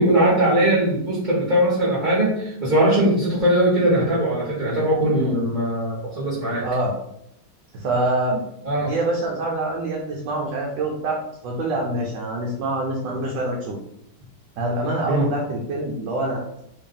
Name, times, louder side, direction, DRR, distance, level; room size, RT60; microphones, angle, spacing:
voice 1, 0.0-6.6 8.6-8.9 15.1-15.3, right 1 dB, 30° right, -8 dB, 1.1 m, -20 dB
voice 2, 6.6-6.9 7.7-8.4 8.8-11.2 11.4-13.8 14.6-16.4, right 2 dB, 70° right, -2 dB, 1.3 m, -25 dB
3.4 x 2.7 x 3.8 m, 0.76 s
omnidirectional pair, 2.2 m